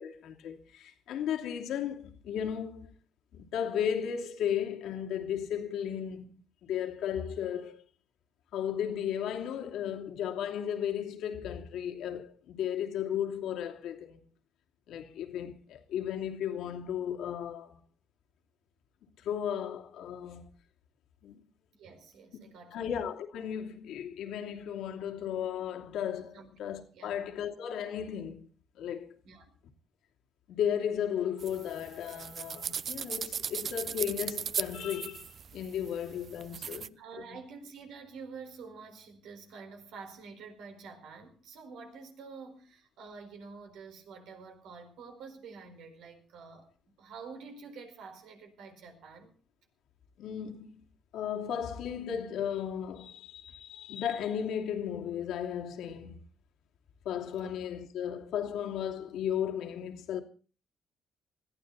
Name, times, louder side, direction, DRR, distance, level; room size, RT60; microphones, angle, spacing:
voice 1, 0.0-2.9 3.3-7.8 8.5-14.2 14.9-17.8 19.2-20.5 21.2-21.4 22.7-28.5 28.7-29.2 30.5-37.0 37.3-37.4 50.2-50.8 51.1-56.2 57.0-60.2, left 9 dB, 85° left, 2.8 m, -35 dB
voice 2, 21.8-22.9 26.3-26.5 26.9-27.2 29.2-29.5 36.6-49.4 57.4-57.6, right 5 dB, 85° right, 4.6 m, -48 dB
sound 1, 31.4-36.9, right 7 dB, 55° right, 0.7 m, -38 dB
20.5 x 14.5 x 4.1 m
cardioid pair, 90°, 0 cm